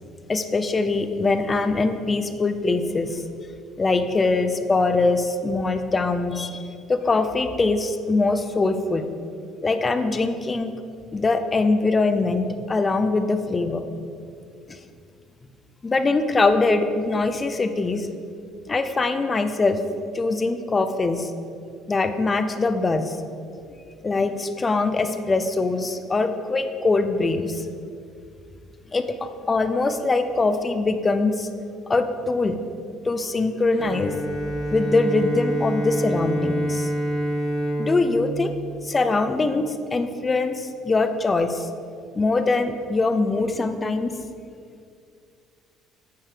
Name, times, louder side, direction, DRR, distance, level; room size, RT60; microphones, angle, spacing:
voice 1, 0.3-3.2 3.8-9.1 9.6-10.7 11.1-13.8 14.7-14.8 15.8-18.1 18.7-19.8 20.1-21.3 21.9-23.2 24.0-27.7 28.9-31.5 31.9-32.6 33.0-34.2 34.7-36.9 37.8-38.5 38.8-41.7 42.2-44.1, left 3 dB, 15° left, 9 dB, 0.5 m, -23 dB
Bowed string instrument, 33.7-39.4, right 1 dB, 25° right, 3.0 m, -27 dB
9.3 x 9.2 x 5.0 m, 2.3 s
cardioid pair, 175°, 0 cm